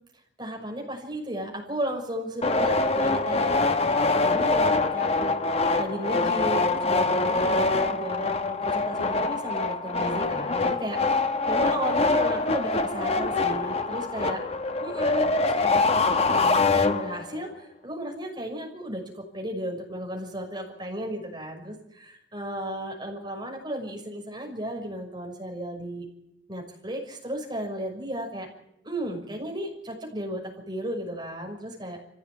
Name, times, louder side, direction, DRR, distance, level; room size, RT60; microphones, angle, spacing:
voice 1, 0.4-14.4 14.8-15.8 16.1-26.1 26.5-28.5 28.8-32.0, right 1 dB, 25° right, 1 dB, 6.0 m, -34 dB
sound 1, 2.4-17.4, left 3 dB, 35° left, 1.1 m, -24 dB
25.0 x 16.0 x 8.8 m, 0.82 s
head